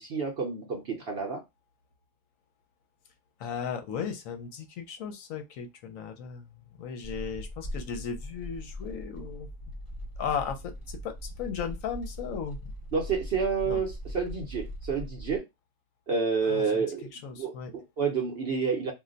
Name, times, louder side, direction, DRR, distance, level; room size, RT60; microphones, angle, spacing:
voice 1, 0.0-1.4 12.9-15.4 16.1-17.1 17.4-18.9, right 5 dB, 55° right, 0.8 m, -29 dB
voice 2, 3.4-9.5 10.2-12.6 13.7-13.8 16.4-16.8 17.1-17.7, left 7 dB, 70° left, 1.0 m, -36 dB
sound 1, 7.0-15.4, equal, 40° left, 1.0 m, -40 dB
2.5 x 2.1 x 3.8 m
omnidirectional pair, 1.5 m